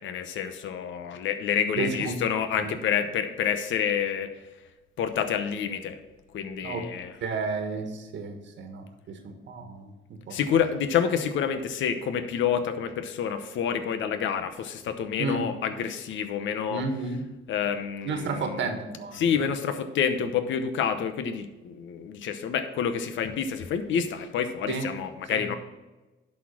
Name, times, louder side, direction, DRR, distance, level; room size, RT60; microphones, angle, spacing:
voice 1, 0.0-4.3 5.0-6.0 6.3-7.2 10.3-16.8 17.5-18.6 19.1-25.5, left 7 dB, 75° left, 9 dB, 0.9 m, -28 dB
voice 2, 1.8-2.2 2.5-2.7 6.6-6.9 7.2-10.4 15.2-15.5 16.7-17.3 18.0-19.5 24.7-24.8 25.3-25.5, right 4 dB, 70° right, 5 dB, 1.5 m, -32 dB
11.0 x 4.3 x 5.8 m, 1.1 s
cardioid pair, 90°, 20 cm